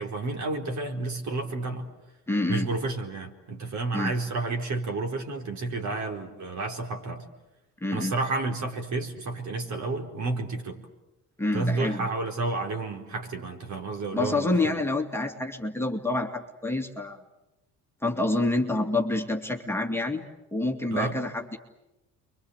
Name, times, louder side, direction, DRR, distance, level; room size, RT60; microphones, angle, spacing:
voice 1, 0.0-1.9 2.5-7.3 7.9-10.8 11.5-14.8 20.9-21.2, right 3 dB, 55° right, 4 dB, 4.6 m, -31 dB
voice 2, 2.3-2.7 3.9-4.1 7.8-8.1 11.4-12.1 14.1-17.2 18.0-20.2 20.5-21.6, left 2 dB, 5° left, 2 dB, 2.4 m, -27 dB
29.5 x 24.0 x 8.2 m, 0.95 s
cardioid pair, 90°, 35 cm